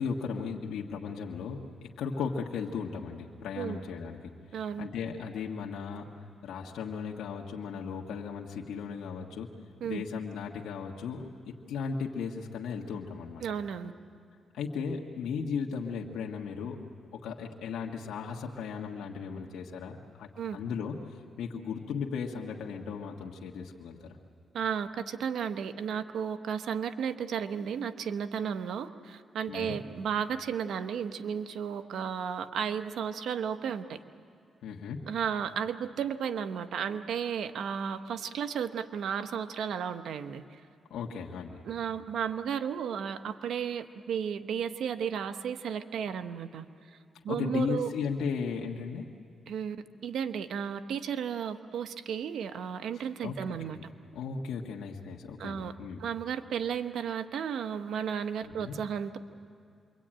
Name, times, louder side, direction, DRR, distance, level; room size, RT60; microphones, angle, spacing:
voice 1, 0.0-9.5 9.8-13.4 14.5-16.8 17.1-24.2 29.5-29.8 34.6-35.0 40.9-41.6 47.3-49.1 53.2-53.8 54.1-56.0 58.4-58.7, left 6 dB, 85° left, -1 dB, 1.6 m, -36 dB
voice 2, 4.5-4.9 9.8-10.0 13.4-13.9 20.4-20.6 24.5-34.0 35.1-40.4 41.6-46.7 47.2-47.9 49.5-49.8 50.0-53.8 55.4-55.7 56.0-59.2, right 7 dB, 75° right, 9 dB, 1.1 m, -33 dB
27.5 x 23.0 x 9.0 m, 2.2 s
cardioid pair, 90°, 0 cm